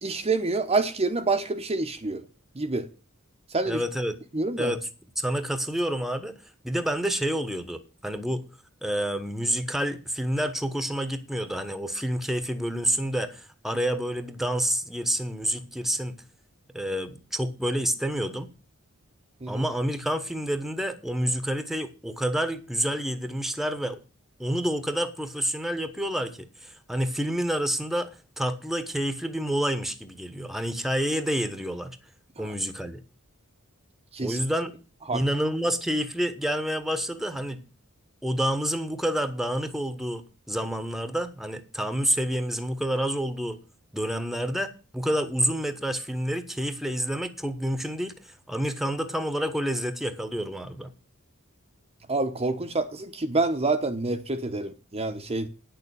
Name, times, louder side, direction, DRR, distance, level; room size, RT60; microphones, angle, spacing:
voice 1, 0.0-2.2 2.5-2.9 3.5-3.8 4.3-4.7 19.4-19.6 32.4-32.5 34.1-34.4 35.1-35.2 52.1-55.5, right 3 dB, 30° right, 0.9 m, -27 dB
voice 2, 3.6-4.2 4.6-4.8 5.2-6.4 6.6-8.4 8.8-16.1 16.7-18.5 19.5-24.0 24.4-32.0 32.4-33.0 34.2-34.7 35.1-37.6 38.2-43.6 43.9-50.9, equal, ahead, 1.1 m, -28 dB
9.8 x 6.8 x 8.4 m
head